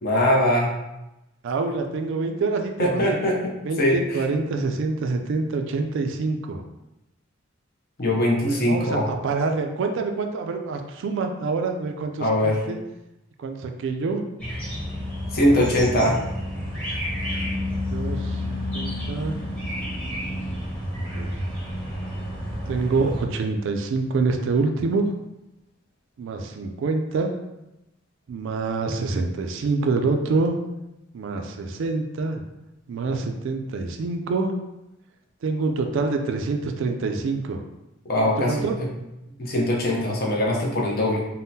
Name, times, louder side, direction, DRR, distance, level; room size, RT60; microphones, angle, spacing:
voice 1, 0.0-0.7 2.8-3.5 3.8-3.9 8.0-9.1 12.2-12.6 15.3-16.2 38.0-38.6 39.4-41.2, left 1 dB, 50° left, -2 dB, 0.6 m, -21 dB
voice 2, 1.4-3.2 3.6-6.6 8.5-12.8 13.4-14.2 15.5-16.3 17.9-19.4 21.0-21.3 22.7-25.1 26.2-27.3 28.3-30.6 31.1-32.4 32.9-34.5 35.4-37.6 38.5-38.8, right 3 dB, 65° right, 5 dB, 0.3 m, -26 dB
sound 1, 14.4-23.2, left 1 dB, 5° left, 0.9 m, -30 dB
3.5 x 2.1 x 2.7 m, 0.95 s
head